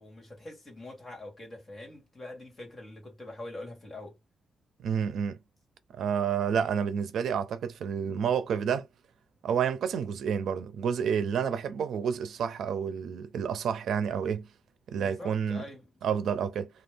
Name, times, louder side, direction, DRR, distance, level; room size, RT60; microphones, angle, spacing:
voice 1, 0.0-4.2 15.0-15.9, left 2 dB, 25° left, 1.6 m, -44 dB
voice 2, 4.8-5.4 5.9-8.9 9.4-14.5 14.9-15.6 16.0-16.7, right 7 dB, 75° right, 0.5 m, -29 dB
2.6 x 2.3 x 3.3 m
wide cardioid pair, 155°, 0 cm